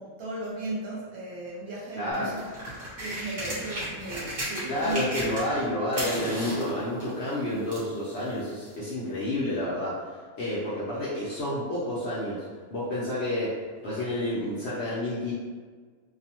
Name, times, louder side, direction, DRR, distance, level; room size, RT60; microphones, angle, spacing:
voice 1, 0.0-2.5 3.0-5.2, right 2 dB, 70° right, -5 dB, 1.1 m, -36 dB
voice 2, 2.0-2.3 4.7-9.9 10.4-12.4 12.7-13.5 13.8-15.3, left 1 dB, 65° left, -8 dB, 0.7 m, -29 dB
sound 1, 2.1-5.6 5.9-7.9 8.7-8.8, right 1 dB, 40° right, 0.8 m, -35 dB
2.6 x 2.1 x 2.8 m, 1.5 s
omnidirectional pair, 1.6 m